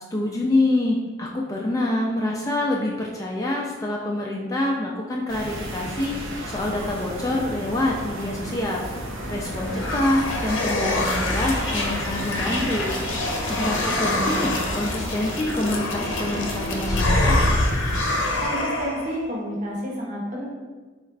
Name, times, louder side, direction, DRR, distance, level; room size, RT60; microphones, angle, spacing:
voice 1, 0.1-13.0 13.4-17.4, left 1 dB, 15° left, -2 dB, 0.3 m, -26 dB
sound 1, 5.3-18.5, equal, 80° right, 0.8 m, -33 dB
sound 2, 9.2-19.2, left 1 dB, 75° left, 0.6 m, -25 dB
voice 2, 18.4-20.5, equal, 40° right, -2 dB, 0.9 m, -30 dB
4.1 x 2.4 x 4.5 m, 1.4 s
head